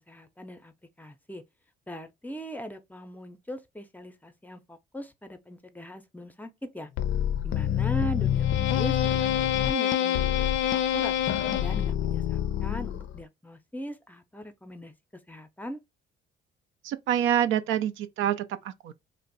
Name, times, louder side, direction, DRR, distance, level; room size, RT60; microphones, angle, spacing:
voice 1, 0.1-1.4 1.9-6.9 7.4-9.3 9.6-11.1 11.6-14.9 15.3-15.8, equal, 10° left, 0.5 m, -39 dB
sound 1, 7.0-13.2, left 10 dB, 70° left, 0.4 m, -26 dB
voice 2, 16.8-18.9, right 10 dB, 80° right, 0.4 m, -27 dB
2.5 x 2.0 x 3.8 m
cardioid pair, 90°, 20 cm